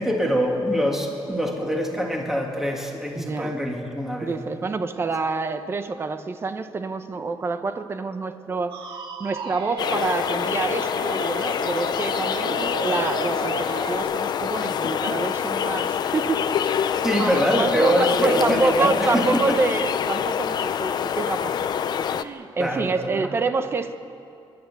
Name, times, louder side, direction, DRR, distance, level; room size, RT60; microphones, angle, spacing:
voice 1, 0.0-4.4 17.0-19.6 22.6-23.3, equal, 5° right, 0 dB, 2.3 m, -24 dB
voice 2, 3.1-3.5 4.2-8.8 9.2-12.5 12.8-16.8 17.1-21.7 22.1-24.0, right 4 dB, 25° right, 9 dB, 1.0 m, -27 dB
sound 1, 8.7-14.0, right 4 dB, 65° right, 2.4 m, -34 dB
sound 2, 9.8-22.2, left 8 dB, 50° left, 0.6 m, -26 dB
29.0 x 11.5 x 8.4 m, 2.6 s
wide cardioid pair, 175°, 9 cm